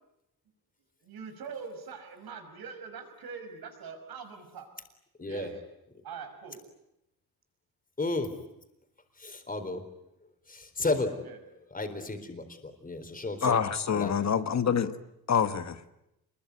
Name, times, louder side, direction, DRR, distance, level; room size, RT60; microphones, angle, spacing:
voice 1, 1.0-4.7 5.2-5.6 6.0-6.6 11.2-11.4, right 5 dB, 70° right, 6 dB, 5.9 m, -43 dB
voice 2, 8.0-8.3 9.2-9.8 10.5-11.1 11.7-13.6 13.9-14.1, left 2 dB, 20° left, 7 dB, 4.1 m, -33 dB
voice 3, 13.4-14.9 15.3-15.8, left 7 dB, 45° left, 11 dB, 1.4 m, -26 dB
28.0 x 22.0 x 9.6 m, 0.85 s
cardioid pair, 120°, 38 cm